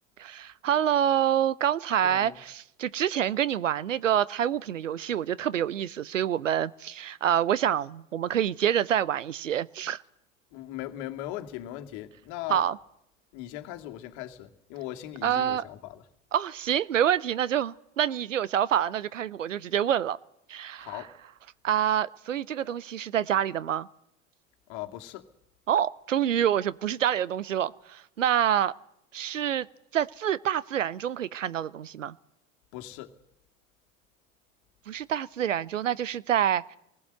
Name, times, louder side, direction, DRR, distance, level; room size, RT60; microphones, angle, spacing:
voice 1, 0.2-10.0 12.5-12.8 15.2-15.6 16.3-20.2 20.5-21.1 21.6-23.9 25.7-28.7 29.1-29.7 29.9-32.1 34.9-36.8, right 10 dB, 75° right, 0.8 m, -27 dB
voice 2, 2.0-2.4 10.5-12.6 13.3-16.0 20.8-21.1 24.7-25.2 32.7-33.1, left 13 dB, 50° left, 2.3 m, -39 dB
26.0 x 20.0 x 7.9 m
figure-of-eight pair, 75°, 38 cm